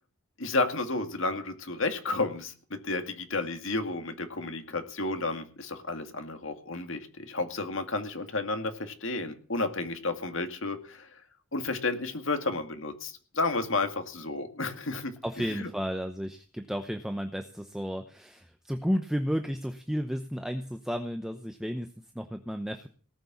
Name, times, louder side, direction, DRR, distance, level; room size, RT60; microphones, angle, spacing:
voice 1, 0.4-11.2 11.5-15.1 15.6-15.7, left 3 dB, 60° left, 7 dB, 2.1 m, -32 dB
voice 2, 15.2-22.9, equal, ahead, 6 dB, 0.7 m, -33 dB
18.5 x 6.8 x 8.2 m, 0.41 s
head